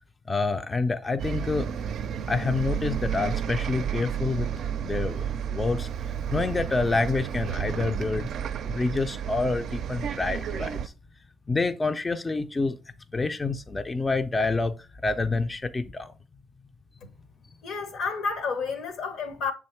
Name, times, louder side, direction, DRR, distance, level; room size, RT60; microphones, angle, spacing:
voice 1, 0.3-1.7 2.3-4.5 4.8-5.9 6.3-8.3 8.6-10.9 11.5-12.8 13.1-16.1, left 3 dB, 25° left, 0.4 m, -27 dB
Bus, 1.2-10.9, right 8 dB, 70° right, 0.4 m, -31 dB
voice 2, 17.6-19.5, left 5 dB, 80° left, 1.1 m, -30 dB
6.3 x 3.5 x 4.4 m
cardioid pair, 90°, 0 cm